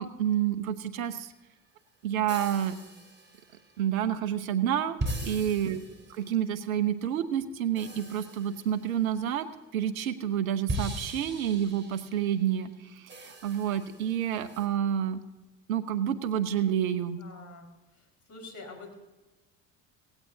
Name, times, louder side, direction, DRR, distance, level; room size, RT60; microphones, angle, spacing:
voice 1, 0.0-1.3 2.0-2.7 3.8-5.8 6.1-9.5 9.7-15.2 15.7-17.2, right 10 dB, 90° right, 13 dB, 1.0 m, -29 dB
sound 1, 1.0-1.1 2.3-3.7 5.0-6.4 7.8-9.1 10.7-12.6 13.1-14.7, right 1 dB, 25° right, 4.3 m, -39 dB
voice 2, 5.2-5.6 17.2-17.7 17.9-18.9, left 2 dB, 45° left, 3 dB, 5.0 m, -47 dB
18.0 x 16.0 x 2.8 m, 1.2 s
hypercardioid pair, 65°, 40 cm